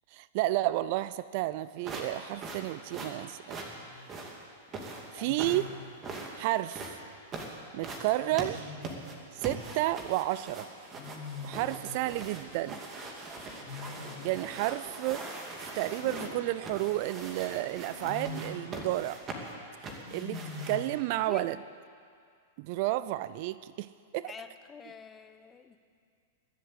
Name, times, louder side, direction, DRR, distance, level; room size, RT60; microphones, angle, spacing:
voice 1, 0.1-3.6 5.1-5.7 6.3-7.0 7.7-8.7 9.3-10.7 11.4-12.8 14.2-15.3 15.8-19.2 19.8-21.6 22.6-24.3, right 16 dB, 50° right, 17 dB, 0.4 m, -31 dB
sound 1, 1.8-21.0, right 2 dB, 25° right, 2.5 m, -42 dB
Wild animals, 3.6-4.0 5.2-5.9 8.3-9.2 10.9-12.0 13.5-14.5 16.0-17.1 17.9-18.7 20.0-21.0, left 4 dB, 65° left, 3.1 m, -43 dB
voice 2, 5.2-5.5 21.1-21.5 24.2-25.8, left 6 dB, 20° left, 8 dB, 1.0 m, -47 dB
22.0 x 7.7 x 8.2 m, 2.2 s
figure-of-eight pair, 100°, 0 cm